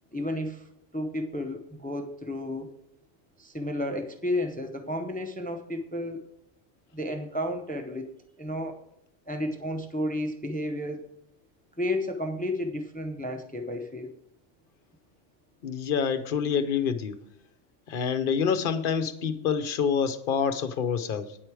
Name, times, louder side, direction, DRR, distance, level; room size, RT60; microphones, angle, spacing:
voice 1, 0.1-0.7 0.9-2.7 3.4-6.3 6.9-8.8 9.3-11.0 11.8-14.1, left 1 dB, 10° left, 6 dB, 0.6 m, -32 dB
voice 2, 15.6-17.2 17.9-21.4, left 7 dB, 50° left, 11 dB, 0.9 m, -27 dB
9.7 x 7.8 x 4.8 m, 0.80 s
omnidirectional pair, 1.2 m